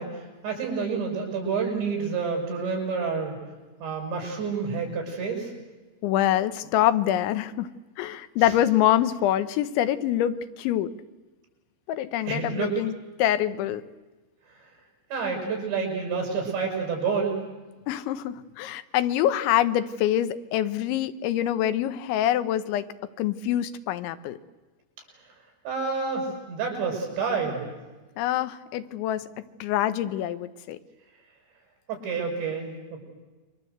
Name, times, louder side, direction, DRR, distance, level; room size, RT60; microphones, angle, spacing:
voice 1, 0.0-3.3 3.8-5.5 8.4-8.5 12.3-12.8 14.5-14.7 15.1-17.4 25.7-27.7 31.9-33.0, right 5 dB, 75° right, 2 dB, 8.9 m, -29 dB
voice 2, 6.0-7.7 8.0-10.9 11.9-12.9 13.2-13.8 17.9-22.9 23.2-24.4 28.2-29.3 29.6-30.8, left 12 dB, 90° left, 13 dB, 3.4 m, -25 dB
28.5 x 24.0 x 8.1 m, 1.2 s
omnidirectional pair, 5.2 m